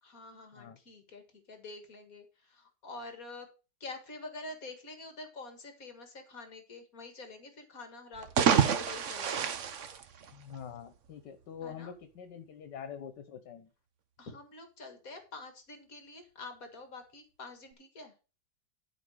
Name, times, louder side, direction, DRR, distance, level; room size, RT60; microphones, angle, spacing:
voice 1, 0.0-3.5 3.8-9.4 11.6-11.9 14.2-18.1, left 3 dB, 55° left, 6 dB, 2.2 m, -47 dB
sound 1, 8.1-10.8, right 7 dB, 50° right, 1.1 m, -28 dB
voice 2, 10.3-13.7, left 8 dB, 85° left, 10 dB, 1.6 m, -45 dB
11.5 x 5.0 x 6.3 m, 0.33 s
omnidirectional pair, 1.8 m